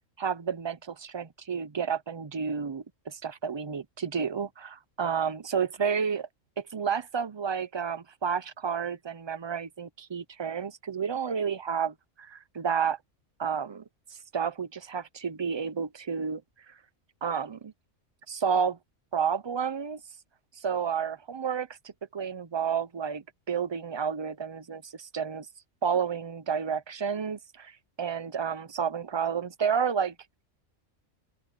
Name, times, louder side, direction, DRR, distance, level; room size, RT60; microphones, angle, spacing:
voice 1, 0.2-6.3 6.6-13.0 13.4-13.8 14.1-16.4 16.7-16.8 17.2-17.7 18.3-18.8 19.1-20.0 20.6-25.5 25.8-30.1, right 6 dB, 35° right, 0.4 m, -31 dB
open air
omnidirectional pair, 1.3 m